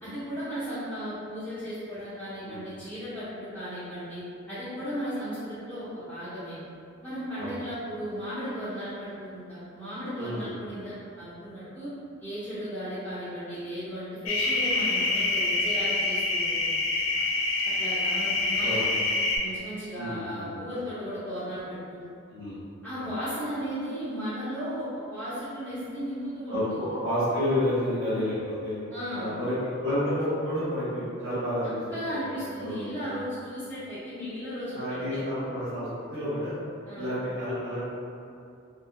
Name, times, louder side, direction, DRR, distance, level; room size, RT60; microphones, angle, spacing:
voice 1, 0.0-4.2 4.5-6.6 7.0-11.9 12.2-16.7 17.6-18.8 19.4-22.1 22.8-26.8 28.9-29.3 31.9-35.2 36.9-37.1, equal, 10° left, -18 dB, 1.0 m, -35 dB
voice 2, 10.2-10.6 18.6-18.9 20.0-20.5 22.3-22.6 23.0-23.1 26.5-28.8 29.2-31.7 32.0-33.1 34.7-36.6 36.9-37.8, left 1 dB, 60° right, -16 dB, 1.0 m, -30 dB
sound 1, 14.3-19.4, left 2 dB, 75° left, 0.4 m, -26 dB
3.6 x 2.2 x 2.2 m, 2.5 s
head